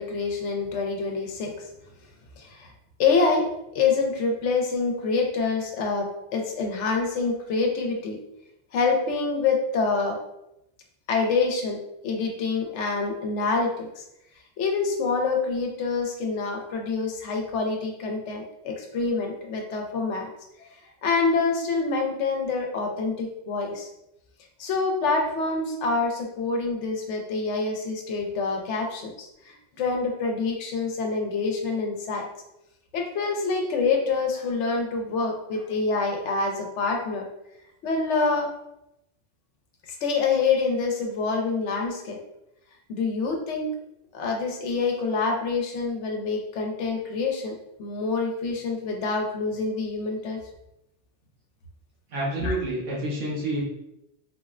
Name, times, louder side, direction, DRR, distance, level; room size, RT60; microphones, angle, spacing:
voice 1, 0.0-1.6 2.4-2.7 3.0-8.2 8.7-10.2 11.1-14.0 14.6-20.3 20.6-20.7 21.0-23.9 24.6-32.3 32.9-37.3 37.8-38.5 39.9-42.2 42.9-43.7 44.1-50.4 52.4-52.6, left 4 dB, 75° left, 2 dB, 0.9 m, -26 dB
voice 2, 52.1-53.6, right 1 dB, 90° right, -6 dB, 1.3 m, -28 dB
3.8 x 2.0 x 2.4 m, 0.85 s
omnidirectional pair, 1.2 m